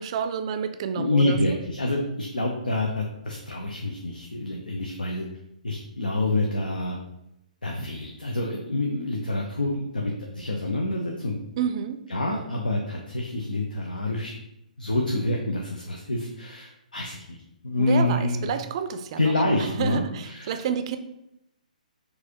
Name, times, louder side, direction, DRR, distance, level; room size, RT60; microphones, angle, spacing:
voice 1, 0.0-1.4 11.6-12.0 17.8-21.0, right 7 dB, 40° right, 9 dB, 0.4 m, -29 dB
voice 2, 1.0-5.3 5.6-7.0 7.6-11.3 12.1-14.4 14.8-17.4 17.6-18.5 19.2-20.6, left 2 dB, 85° left, 0 dB, 0.6 m, -27 dB
4.6 x 2.6 x 2.9 m, 0.84 s
figure-of-eight pair, 130°, 5 cm